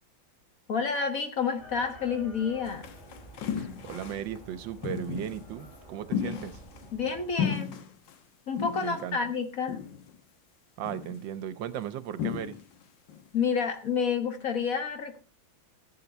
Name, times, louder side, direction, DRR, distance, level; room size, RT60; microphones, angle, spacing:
voice 1, 0.7-2.9 6.2-6.4 6.9-7.8 8.5-9.8 13.3-15.2, left 6 dB, 45° left, 1.6 m, -29 dB
Chicken rooster, 1.6-7.3, right 1 dB, 20° left, 6.2 m, -49 dB
sound 1, 2.6-4.4 4.8-5.5 6.1-7.1 7.4-8.1 8.6-9.1 9.7-10.2 10.9-11.3 12.2-12.8 13.1-13.3, left 8 dB, 70° left, 1.7 m, -34 dB
voice 2, 3.6-6.6 8.8-9.2 10.8-12.6, right 10 dB, 75° right, 1.4 m, -36 dB
15.0 x 8.6 x 4.2 m
omnidirectional pair, 2.2 m